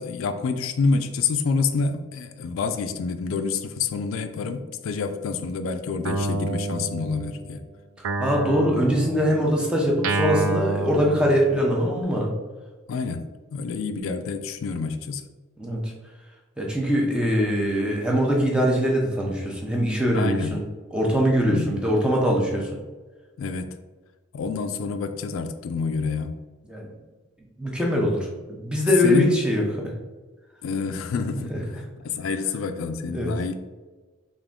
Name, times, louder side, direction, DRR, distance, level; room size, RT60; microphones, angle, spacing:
voice 1, 0.0-7.6 12.9-15.2 20.1-20.6 21.5-21.8 23.4-23.7 24.3-26.4 29.0-29.3 30.6-33.5, left 4 dB, 85° left, 9 dB, 0.3 m, -27 dB
Guitar, 6.0-7.6 8.0-11.9, right 2 dB, 90° right, 0.4 m, -29 dB
voice 2, 8.2-12.3 15.6-15.9 16.6-20.6 20.9-22.7 26.7-26.9 27.6-29.9 31.5-31.6 33.1-33.3, equal, 5° right, -2 dB, 0.5 m, -22 dB
3.5 x 2.5 x 3.6 m, 1.3 s
head